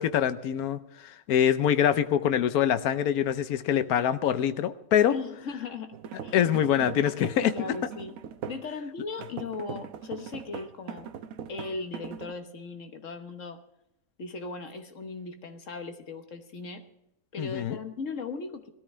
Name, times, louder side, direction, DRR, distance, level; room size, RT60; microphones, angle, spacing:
voice 1, 0.0-5.1 6.3-7.5 17.4-17.8, left 9 dB, 90° left, 12 dB, 1.2 m, -24 dB
voice 2, 5.1-6.5 7.5-8.2 8.5-11.1 11.5-13.6 14.2-16.8 17.3-18.7, left 4 dB, 60° left, 7 dB, 1.5 m, -38 dB
sound 1, 5.9-8.7 9.2-12.3, right 8 dB, 75° right, 1.2 m, -40 dB
19.5 x 13.5 x 3.2 m, 0.84 s
omnidirectional pair, 1.5 m